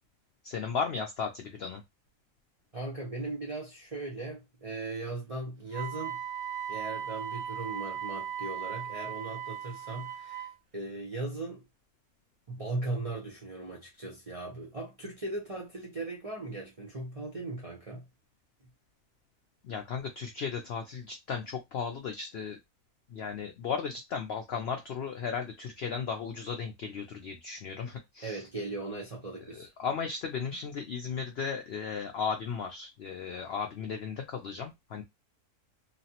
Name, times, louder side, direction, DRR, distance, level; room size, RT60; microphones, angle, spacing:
voice 1, 0.4-1.8 19.6-22.6 23.1-28.4 29.6-35.0, left 6 dB, 85° left, 0.5 m, -35 dB
voice 2, 2.7-6.2 6.7-11.6 12.5-18.0 28.2-29.7, right 2 dB, 40° right, 0.5 m, -38 dB
Wind instrument woodwind instrument, 5.7-10.5, right 9 dB, 65° right, 1.0 m, -37 dB
3.1 x 2.0 x 2.8 m
omnidirectional pair, 1.6 m